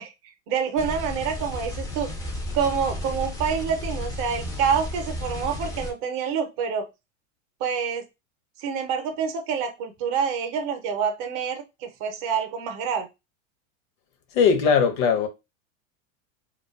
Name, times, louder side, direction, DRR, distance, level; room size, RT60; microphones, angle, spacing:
voice 1, 0.0-2.1 2.5-6.9 7.6-8.0 8.6-13.1, right 6 dB, 45° right, 0.6 m, -27 dB
sound 1, 0.8-5.9, left 1 dB, 10° left, 0.3 m, -33 dB
voice 2, 14.3-15.3, left 6 dB, 60° left, 0.7 m, -19 dB
2.4 x 2.3 x 2.3 m
hypercardioid pair, 120°, 41 cm